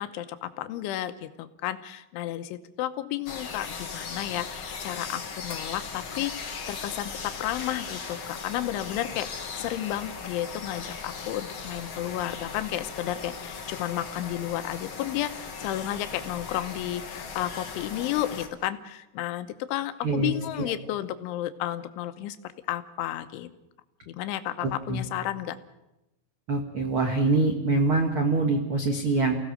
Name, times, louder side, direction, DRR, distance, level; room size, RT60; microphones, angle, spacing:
voice 1, 0.0-22.4 22.7-23.5 24.1-25.6, left 13 dB, 85° left, 10 dB, 3.4 m, -32 dB
sound 1, 3.3-18.5, left 5 dB, 55° left, 1.4 m, -38 dB
voice 2, 20.0-20.7 24.6-25.0 26.5-29.3, right 3 dB, 80° right, 3 dB, 1.2 m, -25 dB
29.0 x 17.0 x 6.5 m, 0.95 s
omnidirectional pair, 5.3 m